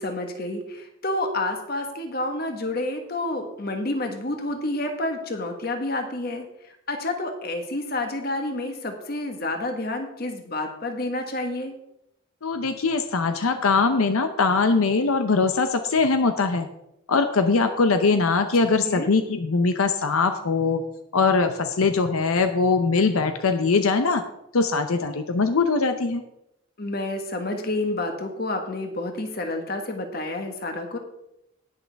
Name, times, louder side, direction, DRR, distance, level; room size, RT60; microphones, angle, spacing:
voice 1, 0.0-11.7 18.9-19.1 26.8-31.0, left 2 dB, 45° left, 4 dB, 1.4 m, -29 dB
voice 2, 12.4-16.7 17.1-20.8 21.1-24.2 24.5-26.2, left 4 dB, 85° left, 8 dB, 0.7 m, -21 dB
19.0 x 6.4 x 3.4 m, 0.83 s
head